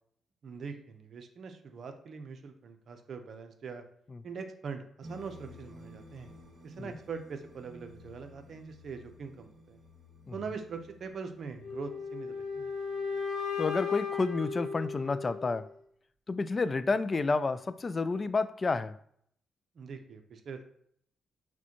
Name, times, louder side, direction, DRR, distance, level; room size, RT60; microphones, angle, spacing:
voice 1, 0.4-3.8 4.2-6.3 6.6-9.8 10.3-12.7 19.7-20.6, right 5 dB, 60° right, 7 dB, 0.6 m, -42 dB
sound 1, 5.0-14.6, left 1 dB, 45° right, 1.4 m, -54 dB
sound 2, 11.6-15.6, left 6 dB, 85° left, 0.8 m, -36 dB
voice 2, 13.6-15.7 16.3-19.0, left 3 dB, 35° left, 13 dB, 0.3 m, -30 dB
5.9 x 2.2 x 2.9 m, 0.66 s
supercardioid pair, 65°, 0 cm